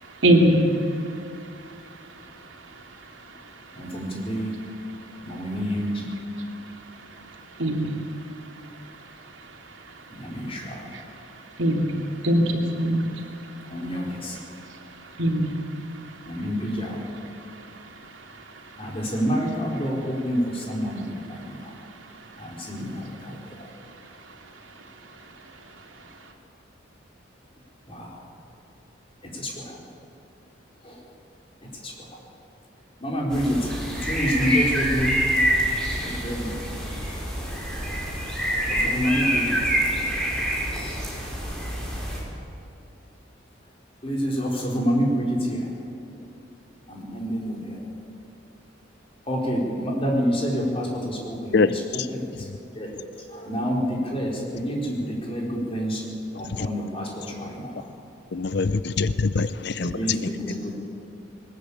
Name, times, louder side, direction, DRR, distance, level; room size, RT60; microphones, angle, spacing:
voice 1, 0.2-0.8 7.6-7.9 10.9-11.0 11.6-13.0 15.2-15.5, right 1 dB, 75° right, 1 dB, 3.0 m, -21 dB
voice 2, 3.7-4.5 5.2-6.1 10.2-10.8 13.7-14.4 16.2-17.0 18.8-21.7 22.4-23.5 27.9-28.2 29.3-29.8 30.8-31.0 31.8-32.1 33.0-33.7 34.0-35.1 36.0-36.5 38.7-39.6 44.0-45.7 46.9-47.8 49.3-52.3 52.8-52.9 53.3-56.0 56.4-57.8 59.4-59.5 59.7-60.8, equal, 30° left, -2 dB, 4.4 m, -28 dB
sound 1, 33.3-42.2, equal, 5° left, 5.0 m, -26 dB
voice 3, 51.5-52.1 56.5-56.7 58.3-60.0, left 4 dB, 55° left, 13 dB, 0.6 m, -24 dB
20.5 x 19.5 x 8.8 m, 2.6 s
head